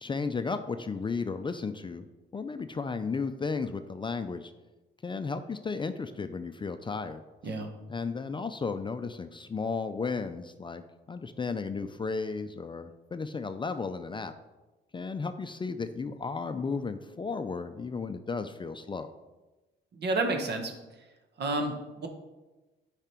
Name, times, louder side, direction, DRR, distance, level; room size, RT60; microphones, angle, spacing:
voice 1, 0.0-2.1 2.3-4.5 5.0-7.6 7.9-14.3 14.9-19.1, left 4 dB, 25° left, 9 dB, 0.4 m, -34 dB
voice 2, 19.9-20.7 21.4-22.1, right 2 dB, 55° right, 5 dB, 1.3 m, -30 dB
8.8 x 5.0 x 4.4 m, 1.1 s
cardioid pair, 90°, 20 cm